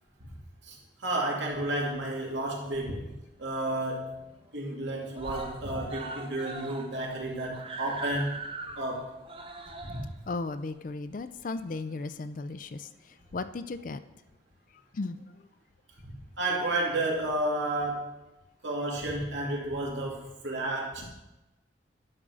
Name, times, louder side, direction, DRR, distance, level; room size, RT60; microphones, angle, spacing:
voice 1, 0.6-3.1 3.4-4.2 4.5-8.4 8.8-9.1 9.8-10.0 16.0-18.1 18.6-21.1, right 1 dB, 80° right, -2 dB, 2.3 m, -31 dB
Screaming, 2.2-3.2 3.5-3.6 3.9-4.0 4.3-4.8 5.1-11.9 12.8-12.9, right 3 dB, 30° right, 0.7 m, -42 dB
voice 2, 10.3-12.9 13.3-14.0 14.9-15.2, left 3 dB, 45° left, 12 dB, 0.4 m, -35 dB
11.0 x 3.8 x 6.2 m, 0.98 s
head